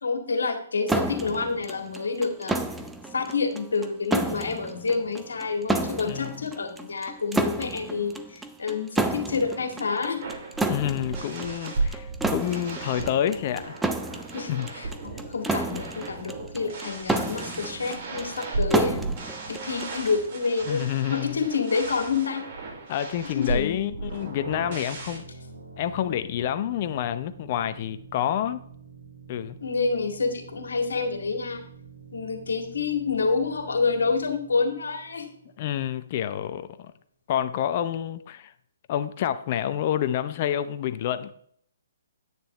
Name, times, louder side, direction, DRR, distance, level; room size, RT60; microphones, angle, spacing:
voice 1, 0.0-2.6 3.1-10.2 14.3-19.1 19.5-20.8 21.1-22.4 23.3-23.8 29.6-31.6 32.1-35.3, left 4 dB, 70° left, 2.1 m, -28 dB
sound 1, 0.9-20.3, right 2 dB, 5° right, 0.7 m, -31 dB
voice 2, 6.0-6.4 10.7-13.8 14.5-14.7 20.6-21.4 22.9-25.2 25.8-28.6 29.3-29.6 35.6-36.9 37.3-38.5 38.9-41.3, left 10 dB, 40° left, 0.7 m, -28 dB
sound 2, 10.2-25.2, right 3 dB, 50° right, 3.2 m, -35 dB
sound 3, 24.3-35.8, right 4 dB, 80° right, 2.1 m, -47 dB
10.0 x 9.1 x 3.3 m
figure-of-eight pair, 130°, 0 cm